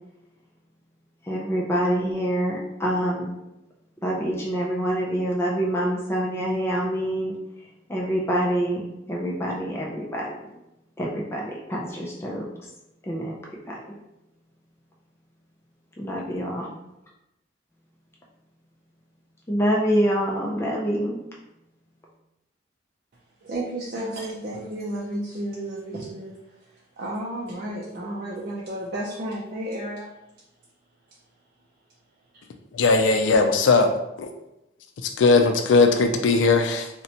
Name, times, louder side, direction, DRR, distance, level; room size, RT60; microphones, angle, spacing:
voice 1, 1.2-3.3 4.0-7.3 7.9-10.3 11.0-12.5 13.0-13.3 13.7-14.0 16.0-16.7 19.5-21.2, equal, 15° left, -3 dB, 0.4 m, -26 dB
voice 2, 23.4-30.1 32.3-32.4, right 1 dB, 50° right, -5 dB, 0.5 m, -32 dB
voice 3, 32.7-34.3 35.2-36.9, left 3 dB, 85° left, 5 dB, 0.4 m, -19 dB
3.9 x 2.2 x 2.8 m, 0.90 s
head